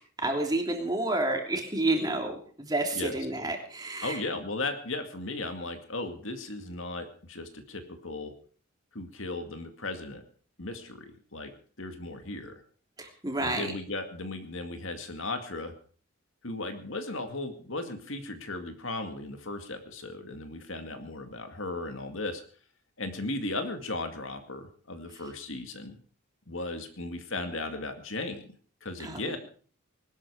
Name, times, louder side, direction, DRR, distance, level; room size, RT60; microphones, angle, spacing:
voice 1, 0.2-4.2 13.0-13.7 29.0-29.4, right 2 dB, 20° right, 2 dB, 3.1 m, -30 dB
voice 2, 4.0-8.3 8.9-10.2 10.6-11.5 11.8-12.6 13.4-15.7 16.4-22.4 23.0-26.0 26.5-28.5 28.8-29.4, left 2 dB, 65° left, 7 dB, 2.2 m, -36 dB
20.5 x 12.5 x 4.9 m, 0.43 s
head